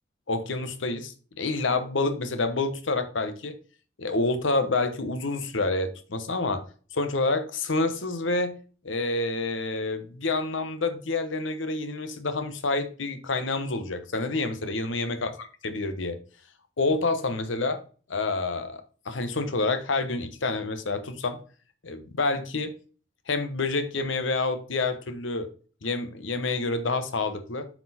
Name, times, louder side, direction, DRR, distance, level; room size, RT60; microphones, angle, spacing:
voice 1, 0.3-3.5 4.0-6.6 6.9-8.6 8.8-15.3 15.6-16.2 16.8-17.8 18.1-21.4 21.8-22.7 23.3-25.5 25.8-27.7, left 3 dB, 75° left, 1.0 m, -28 dB
8.3 x 4.6 x 4.1 m
head